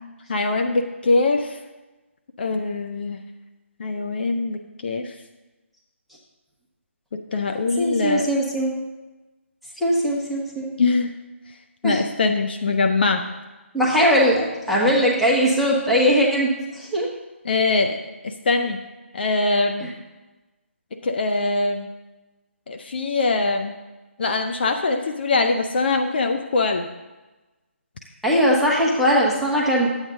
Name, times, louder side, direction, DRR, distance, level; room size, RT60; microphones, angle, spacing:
voice 1, 0.3-1.6 2.4-3.2 3.8-5.2 7.3-8.3 10.8-11.1 11.8-13.3 17.4-18.8 19.1-19.9 20.9-21.9 22.7-23.7 24.2-26.9, left 3 dB, 50° left, 5 dB, 0.6 m, -22 dB
voice 2, 7.8-8.7 9.8-10.7 11.8-12.0 13.7-17.1 19.8-19.9 28.2-29.9, equal, ahead, -6 dB, 1.1 m, -20 dB
10.5 x 8.2 x 3.7 m, 1.1 s
figure-of-eight pair, 155°, 7 cm